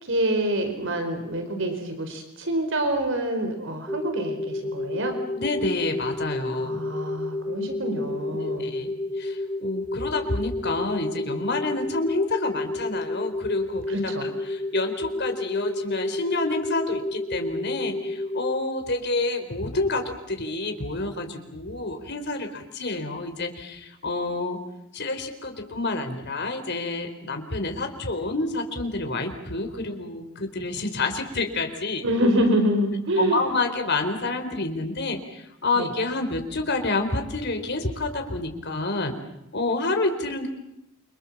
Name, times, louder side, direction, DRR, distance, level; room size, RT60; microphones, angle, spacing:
voice 1, 0.0-5.1 6.5-8.7 13.9-14.3 32.0-33.5 35.7-35.9, right 1 dB, 60° right, 6 dB, 4.6 m, -26 dB
sound 1, 3.9-18.6, left 2 dB, 5° left, 2.3 m, -31 dB
voice 2, 5.3-6.8 8.4-24.6 24.9-32.0 33.2-39.1 39.5-40.5, left 2 dB, 50° left, 6 dB, 4.4 m, -28 dB
29.0 x 26.0 x 7.4 m, 0.82 s
head